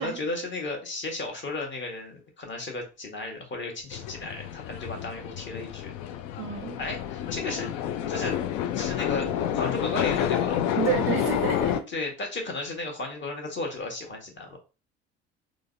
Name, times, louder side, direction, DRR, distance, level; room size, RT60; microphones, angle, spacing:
voice 1, 0.0-5.9 6.8-7.7 8.1-8.4 8.7-10.6 11.9-14.6, left 2 dB, 30° left, 1.3 m, -34 dB
sound 1, 3.9-11.8, left 10 dB, 55° left, 0.5 m, -29 dB
voice 2, 6.4-6.8 10.8-11.9, right 8 dB, 40° right, 0.5 m, -30 dB
3.8 x 2.1 x 2.5 m
figure-of-eight pair, 55°, 35 cm